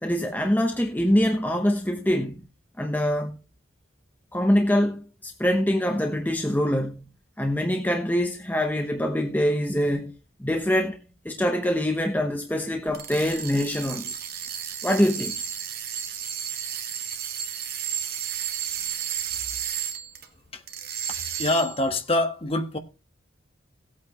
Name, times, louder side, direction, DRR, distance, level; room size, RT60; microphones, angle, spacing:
voice 1, 0.0-2.4 2.8-3.4 4.3-10.1 10.4-11.0 11.2-14.1 14.8-15.4, equal, 10° left, 1.0 m, -24 dB
sound 1, 12.9-20.3 20.7-21.8, right 9 dB, 50° right, 1.5 m, -32 dB
voice 2, 21.1-22.8, left 2 dB, 30° left, 1.4 m, -25 dB
17.5 x 8.6 x 3.0 m
head